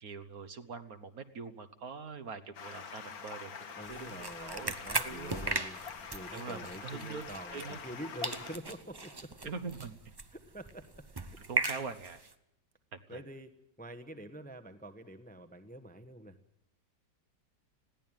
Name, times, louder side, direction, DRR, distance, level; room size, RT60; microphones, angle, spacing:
voice 1, 0.0-3.5 3.9-4.7 5.0-5.3 6.3-7.2 7.5-7.8 8.2-8.3 9.4-10.1 11.5-12.2 12.9-13.2, right 5 dB, 55° right, 9 dB, 1.7 m, -43 dB
Stream, 2.5-8.6, left 6 dB, 60° left, 1.8 m, -45 dB
voice 2, 3.8-9.3 10.3-11.4 13.1-13.5 13.8-16.4, right 1 dB, 5° left, 7 dB, 1.0 m, -47 dB
sound 1, 3.8-8.0 8.2-12.3, right 3 dB, 20° right, 0.6 m, -38 dB
21.0 x 16.0 x 9.1 m, 0.81 s
omnidirectional pair, 1.9 m